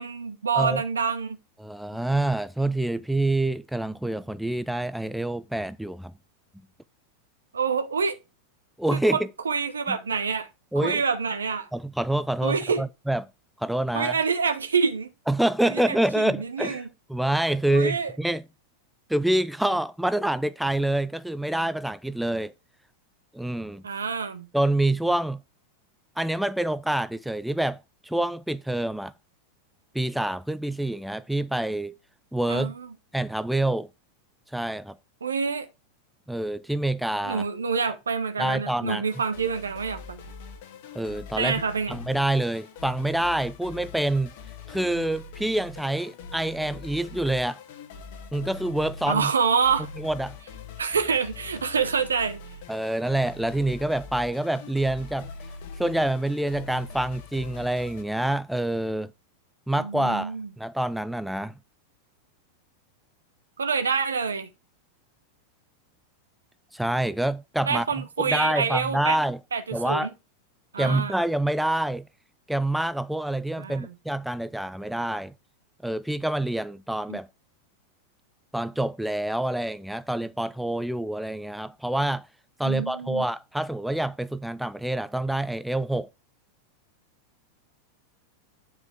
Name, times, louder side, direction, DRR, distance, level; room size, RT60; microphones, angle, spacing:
voice 1, 0.0-1.4 7.5-8.2 8.9-10.5 10.8-11.7 12.4-12.8 13.9-15.1 15.6-16.9 17.7-18.1 23.8-24.5 32.5-32.9 35.2-35.7 37.2-40.2 41.4-42.0 49.1-49.9 50.8-52.4 59.8-60.5 63.6-64.5 67.7-69.2 69.5-70.1 70.7-71.1 73.6-73.9 77.1-77.2 82.6-83.2, right 5 dB, 70° right, 1.2 m, -27 dB
voice 2, 1.6-6.1 8.8-9.3 9.9-10.0 10.7-11.0 11.7-13.3 13.6-14.2 15.3-16.8 17.1-18.4 19.1-22.5 23.3-23.8 24.5-25.4 26.2-27.8 28.0-29.1 29.9-32.0 32.3-32.7 33.1-33.9 34.5-35.0 36.3-37.4 38.4-39.0 40.9-41.6 41.9-44.3 44.7-47.6 48.3-49.3 50.0-50.4 52.7-55.3 55.8-59.1 59.7-61.5 66.7-69.4 69.7-70.1 70.8-72.1 72.5-75.3 75.8-77.3 78.5-82.3 82.6-86.1, right 1 dB, ahead, 0.4 m, -27 dB
sound 1, 39.1-58.0, left 4 dB, 50° left, 1.5 m, -42 dB
9.5 x 4.7 x 4.6 m
figure-of-eight pair, 90°, 0 cm